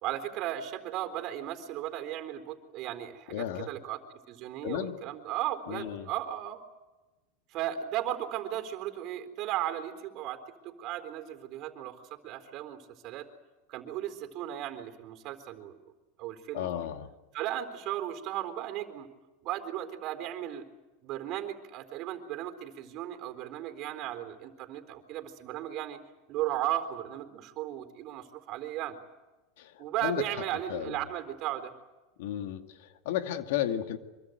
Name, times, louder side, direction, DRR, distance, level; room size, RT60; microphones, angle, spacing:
voice 1, 0.0-4.0 4.3-6.6 7.5-13.3 13.7-15.8 16.2-16.7 17.3-19.1 19.4-20.7 21.0-26.0 26.3-29.0 29.8-31.7, right 12 dB, 50° right, 8 dB, 3.9 m, -36 dB
voice 2, 3.3-3.7 4.6-5.0 5.7-6.1 16.5-17.1 29.6-30.2 30.7-31.0 32.2-34.0, left 11 dB, 75° left, 7 dB, 2.3 m, -33 dB
25.5 x 24.0 x 8.1 m, 1.1 s
supercardioid pair, 110°, 0 cm